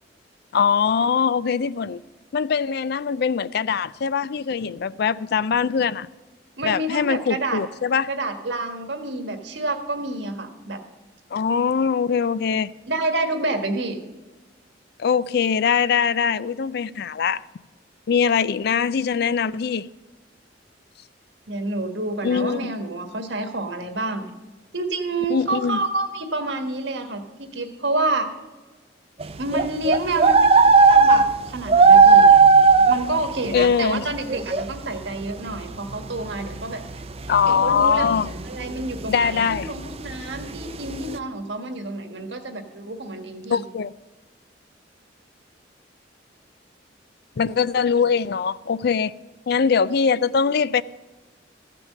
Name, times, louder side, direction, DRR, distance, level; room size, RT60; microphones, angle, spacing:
voice 1, 0.5-2.0 2.3-6.1 6.6-8.1 11.3-12.7 15.0-17.4 18.1-19.9 22.2-22.7 25.3-25.8 33.5-34.1 37.3-38.3 39.1-39.7 43.5-43.9 47.4-49.1 49.5-50.8, left 6 dB, 55° left, 0.4 m, -22 dB
voice 2, 6.6-7.6 8.1-10.8 12.9-14.0 21.5-24.3 24.7-28.3 29.4-32.2 32.9-36.8 37.5-38.1 38.4-43.6, right 2 dB, 70° right, 1.6 m, -28 dB
sound 1, 29.2-33.7 34.3-35.0 35.2-35.3 35.5-36.0 36.3-41.2, right 4 dB, 35° right, 0.5 m, -15 dB
14.5 x 6.1 x 7.5 m
head